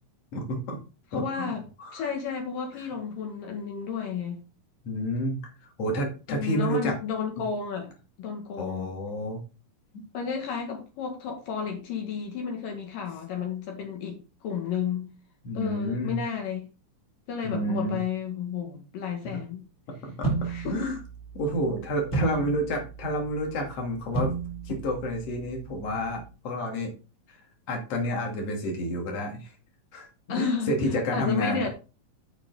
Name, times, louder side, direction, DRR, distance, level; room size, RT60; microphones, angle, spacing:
voice 1, 0.3-0.8 1.1-1.5 1.8-2.0 2.8-2.9 4.8-5.5 5.8-6.9 7.4-7.5 8.6-9.4 9.9-10.0 15.4-16.2 17.4-18.0 19.2-19.4 19.9-20.3 20.6-21.0 21.3-24.3 24.6-26.9 27.3-27.4 27.7-29.5 29.9-31.6, equal, 45° left, 3.2 m, -30 dB
voice 2, 1.1-1.6 1.9-4.4 6.3-7.9 8.2-8.9 10.1-15.1 15.6-16.6 17.3-19.6 20.5-20.9 22.2-22.7 30.3-30.8 31.1-31.7, left 6 dB, 75° left, 3.4 m, -32 dB
sound 1, 20.2-26.3, right 4 dB, 20° left, 2.7 m, -34 dB
12.0 x 5.3 x 4.1 m
omnidirectional pair, 4.0 m